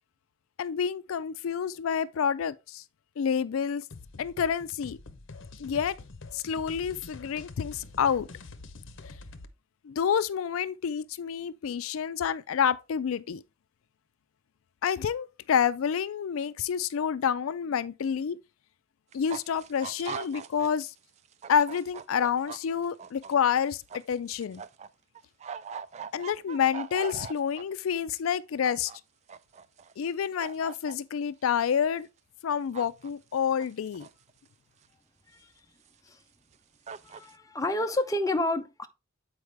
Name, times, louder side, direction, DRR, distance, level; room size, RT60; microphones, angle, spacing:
voice 1, 0.6-2.8 3.2-3.8 4.2-5.0 5.6-6.0 6.3-8.3 9.8-13.4 14.8-18.4 19.1-20.9 21.5-23.8 24.1-24.6 26.1-28.9 30.0-32.1 32.4-34.1, left 7 dB, 80° left, 0.4 m, -28 dB
sound 1, 3.9-9.5, left 3 dB, 65° left, 0.8 m, -46 dB
sound 2, 19.1-20.9 21.2-24.9 25.1-27.6 28.3-29.0 29.3-30.1 30.4-30.9 32.7-33.1 33.4-34.3 34.8-34.9 35.9-36.0 36.5-36.6 36.9-37.3, right 6 dB, 35° right, 0.3 m, -41 dB
voice 2, 37.0-38.9, left 1 dB, 15° left, 0.6 m, -30 dB
7.9 x 4.8 x 3.3 m
head